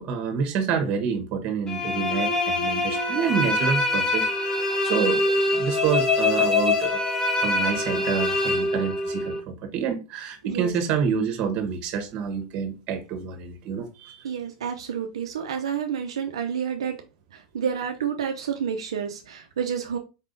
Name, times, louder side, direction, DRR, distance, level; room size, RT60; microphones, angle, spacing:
voice 1, 0.0-7.0 7.3-14.3, right 6 dB, 45° right, 1.2 m, -28 dB
sound 1, 1.7-9.4, left 2 dB, 25° left, 1.0 m, -24 dB
voice 2, 14.2-16.9 17.3-20.0, right 7 dB, 90° right, 0.5 m, -29 dB
4.3 x 3.5 x 2.6 m
hypercardioid pair, 110°, 3 cm